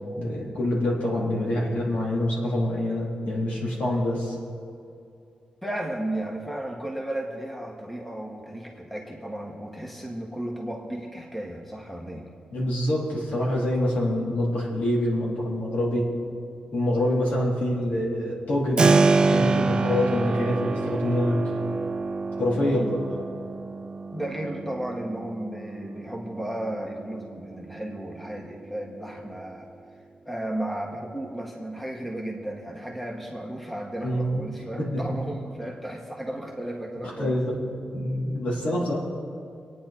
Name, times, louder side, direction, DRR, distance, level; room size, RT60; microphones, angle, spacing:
voice 1, 0.2-4.3 12.5-16.1 16.7-18.9 19.3-21.4 22.4-22.8 34.0-34.4 34.8-35.0 37.2-37.6 37.9-39.0, left 1 dB, 70° left, -4 dB, 3.9 m, -25 dB
voice 2, 5.6-12.3 22.5-22.9 24.1-29.7 30.2-37.4 38.4-38.8, right 1 dB, 5° left, 0 dB, 1.3 m, -34 dB
Keyboard (musical), 18.8-29.4, right 4 dB, 35° right, 0.5 m, -27 dB
26.0 x 9.4 x 4.4 m, 2.5 s
wide cardioid pair, 175°, 3 cm